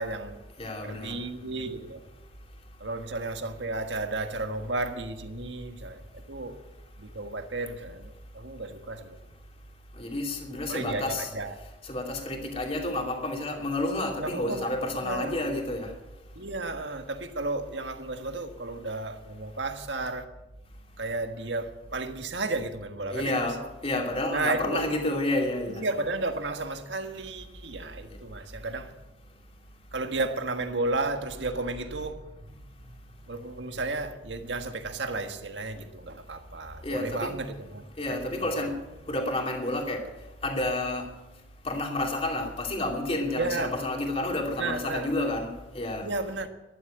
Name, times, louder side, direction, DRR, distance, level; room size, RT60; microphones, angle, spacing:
voice 1, 0.0-0.4 0.8-2.0 2.8-6.6 7.0-9.2 10.7-11.5 14.2-14.7 15.0-15.5 16.3-20.3 21.0-23.5 24.3-24.8 25.7-28.9 29.9-33.0 33.3-38.2 38.5-38.7 43.3-43.8 44.6-45.3 46.0-46.5, right 2 dB, 85° right, 1.6 m, -33 dB
voice 2, 0.6-1.2 2.4-2.7 9.9-11.3 11.8-15.9 16.3-16.4 23.1-25.8 27.8-28.2 29.3-29.4 36.8-37.3 37.9-38.8 39.1-46.1, left 1 dB, 35° left, 2.7 m, -30 dB
13.5 x 11.5 x 8.9 m
head